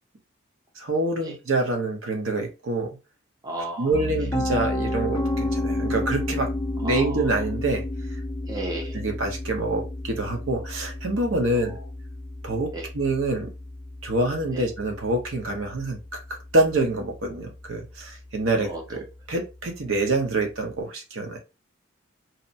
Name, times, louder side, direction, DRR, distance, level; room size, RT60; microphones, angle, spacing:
voice 1, 0.8-3.0 3.8-6.5 6.8-7.8 9.0-11.7 12.4-13.5 14.0-16.0 16.3-21.4, right 2 dB, 80° right, 2 dB, 0.8 m, -26 dB
voice 2, 3.4-4.3 6.8-7.5 8.4-9.0 11.5-11.9 12.7-12.9 14.5-14.7 18.6-19.1, right 2 dB, 20° right, -1 dB, 0.6 m, -35 dB
Piano, 3.9-15.8, left 1 dB, 25° left, 0.5 m, -31 dB
2.8 x 2.1 x 2.7 m, 0.28 s
head